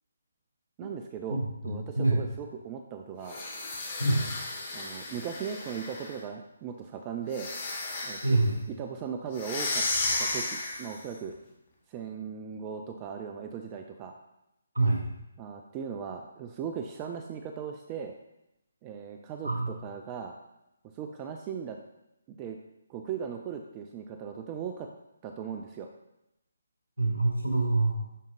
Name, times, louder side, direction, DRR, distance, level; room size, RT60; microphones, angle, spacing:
voice 1, 0.8-3.4 4.7-7.5 8.0-8.4 8.8-9.9 10.2-11.3 11.9-14.2 15.4-18.2 18.8-20.3 20.9-21.8 22.3-22.6 22.9-24.9 25.2-25.9, right 7 dB, 20° right, 4 dB, 0.5 m, -38 dB
voice 2, 1.6-2.2 4.0-4.2 8.2-8.7 14.7-15.0 19.4-19.7 27.0-28.0, right 2 dB, 75° right, -3 dB, 2.7 m, -25 dB
sound 1, 3.2-6.2 7.3-8.4 9.3-11.0, left 2 dB, 35° left, 1.7 m, -34 dB
10.5 x 5.2 x 2.5 m, 0.89 s
figure-of-eight pair, 145°, 0 cm